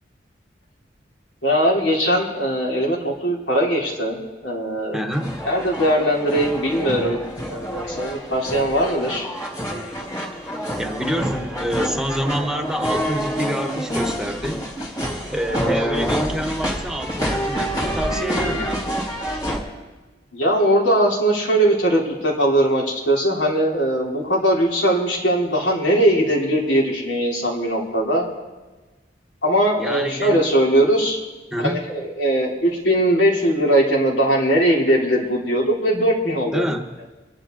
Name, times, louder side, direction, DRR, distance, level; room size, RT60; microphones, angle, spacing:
voice 1, 1.4-4.2 4.4-5.0 5.4-7.2 7.4-9.3 15.5-15.7 20.3-28.3 29.4-31.2 31.6-36.6, right 1 dB, 80° left, -2 dB, 3.4 m, -20 dB
voice 2, 4.9-5.3 10.8-14.6 15.3-18.8 29.8-30.4 31.5-31.8 36.5-36.9, equal, 5° right, 4 dB, 1.2 m, -27 dB
sound 1, 5.1-19.6, equal, 20° left, 2.5 m, -27 dB
24.5 x 10.5 x 3.9 m, 1.2 s
head